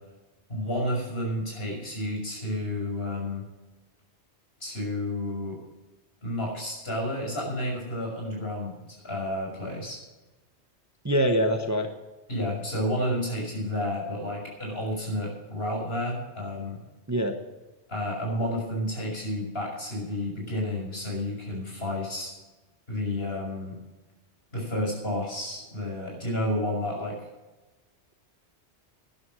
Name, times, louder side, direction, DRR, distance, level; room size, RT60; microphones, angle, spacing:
voice 1, 0.5-3.5 4.6-5.6 6.2-10.0 12.3-16.8 17.9-22.3 22.9-23.8 24.5-27.2, left 1 dB, 60° left, -1 dB, 6.5 m, -31 dB
voice 2, 11.0-11.9 17.1-17.4, equal, 15° right, 4 dB, 1.0 m, -24 dB
13.0 x 11.0 x 6.4 m, 1.1 s
omnidirectional pair, 1.2 m